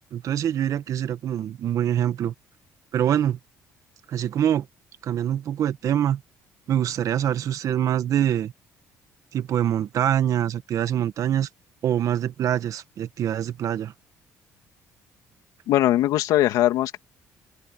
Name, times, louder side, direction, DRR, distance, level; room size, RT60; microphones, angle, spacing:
voice 1, 0.0-2.3 2.9-3.4 4.1-4.7 5.0-6.2 6.7-8.5 9.3-11.5 11.8-13.9, right 10 dB, 60° right, 1.6 m, -24 dB
voice 2, 15.7-17.0, left 14 dB, 80° left, 2.5 m, -20 dB
open air
cardioid pair, 85°, 6 cm